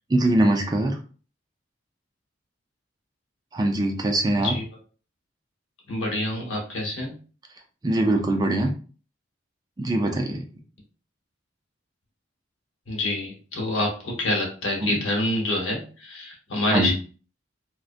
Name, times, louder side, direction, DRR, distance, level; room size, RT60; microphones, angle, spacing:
voice 1, 0.1-0.9 3.5-4.5 7.8-8.7 9.8-10.4 14.8-15.0 16.7-16.9, right 1 dB, 20° right, 3 dB, 0.3 m, -22 dB
voice 2, 5.9-7.1 12.9-16.9, left 1 dB, 85° left, 0 dB, 1.0 m, -27 dB
2.5 x 2.1 x 2.4 m, 0.38 s
head